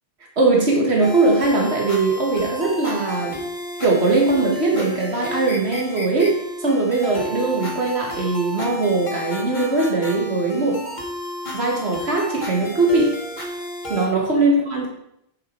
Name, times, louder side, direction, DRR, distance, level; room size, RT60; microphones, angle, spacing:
voice 1, 0.4-3.4 3.8-10.8 11.5-13.1 13.9-14.9, right 3 dB, 90° right, -1 dB, 1.9 m, -20 dB
sound 1, 1.0-14.1, left 1 dB, 45° left, 1.6 m, -32 dB
8.8 x 6.9 x 4.5 m, 0.76 s
omnidirectional pair, 1.1 m